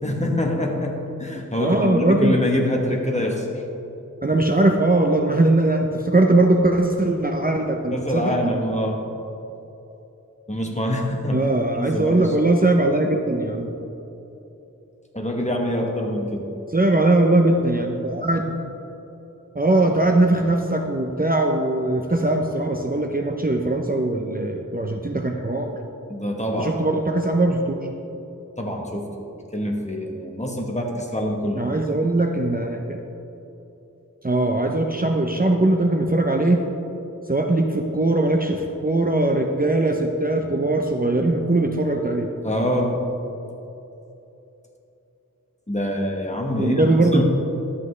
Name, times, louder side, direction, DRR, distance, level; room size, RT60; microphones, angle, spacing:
voice 1, 0.0-3.6 7.9-9.1 10.5-11.5 11.8-12.4 15.1-16.5 26.1-26.8 28.6-29.3 29.5-31.7 42.4-43.1 45.7-47.2, left 1 dB, 20° left, 0 dB, 1.2 m, -25 dB
voice 2, 1.6-2.4 4.2-8.4 11.3-13.7 16.7-18.6 19.5-25.7 26.6-27.9 31.6-33.0 34.2-36.7 37.3-42.3 46.6-47.2, right 2 dB, 25° right, 2 dB, 0.6 m, -20 dB
11.5 x 7.6 x 3.2 m, 2.9 s
wide cardioid pair, 40°, 33 cm